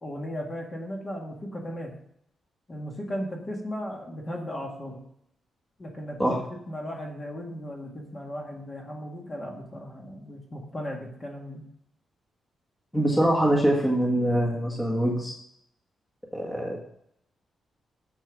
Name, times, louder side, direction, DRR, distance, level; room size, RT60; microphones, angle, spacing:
voice 1, 0.0-1.9 2.7-5.0 5.8-6.4 6.7-11.6, equal, 25° left, 0 dB, 1.9 m, -36 dB
voice 2, 12.9-15.3 16.3-16.8, right 1 dB, 10° left, -3 dB, 1.7 m, -24 dB
8.8 x 7.2 x 6.2 m, 0.71 s
wide cardioid pair, 175°, 0 cm